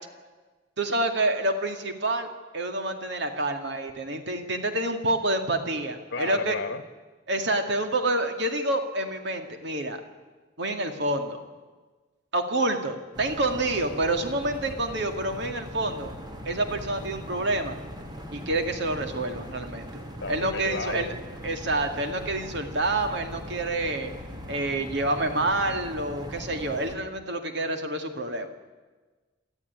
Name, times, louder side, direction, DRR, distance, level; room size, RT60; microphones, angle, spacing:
voice 1, 0.8-6.6 7.3-10.0 10.6-11.5 12.3-16.1 16.5-17.8 18.3-19.9 20.3-21.1 21.4-24.1 24.5-28.5, right 2 dB, 65° right, 6 dB, 2.4 m, -28 dB
voice 2, 6.1-6.8 20.2-21.1, left 4 dB, 65° left, 10 dB, 1.4 m, -33 dB
sound 1, 13.1-26.9, equal, 25° right, 2.4 m, -40 dB
28.0 x 13.5 x 9.6 m, 1.3 s
head